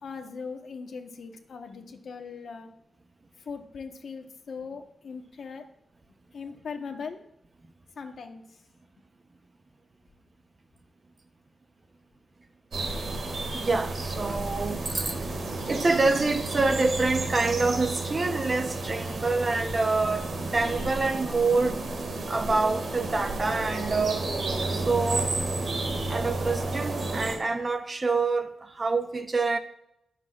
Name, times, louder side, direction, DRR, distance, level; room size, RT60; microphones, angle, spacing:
voice 1, 0.0-2.7 3.4-5.7 6.3-7.2 8.0-8.6, left 5 dB, 65° left, 1.2 m, -39 dB
sound 1, 12.7-27.4, right 2 dB, 60° right, 2.1 m, -31 dB
voice 2, 13.5-15.4 15.7-21.8 22.3-24.3 24.7-25.3 26.1-29.6, right 3 dB, 30° right, 0.8 m, -26 dB
21.5 x 7.6 x 2.5 m
wide cardioid pair, 135°, 0 cm